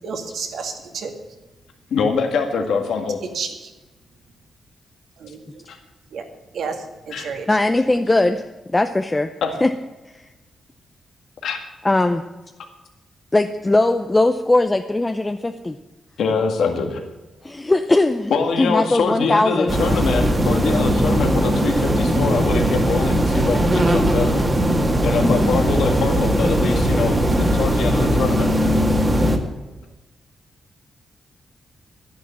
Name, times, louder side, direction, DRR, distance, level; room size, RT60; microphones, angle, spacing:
voice 1, 0.0-1.1 3.3-3.7 5.2-5.4 6.1-6.2 6.5-6.8 7.1-7.5 29.3-29.5, right 5 dB, 75° right, 4 dB, 2.2 m, -30 dB
voice 2, 1.9-3.2 5.7-5.8 7.1-7.3 9.4-9.5 11.4-11.6 16.2-17.0 18.3-24.4 25.0-28.5, left 5 dB, 85° left, 4 dB, 1.9 m, -24 dB
voice 3, 7.5-8.4 8.7-9.3 9.6-9.7 10.1-10.2 11.8-12.2 13.3-15.7 17.4-18.3 18.6-19.7 25.2-25.6, left 2 dB, 15° left, 7 dB, 0.6 m, -19 dB
sound 1, 19.7-29.4, equal, 20° right, 1.7 m, -19 dB
12.0 x 10.5 x 8.7 m, 1.1 s
wide cardioid pair, 130°, 0 cm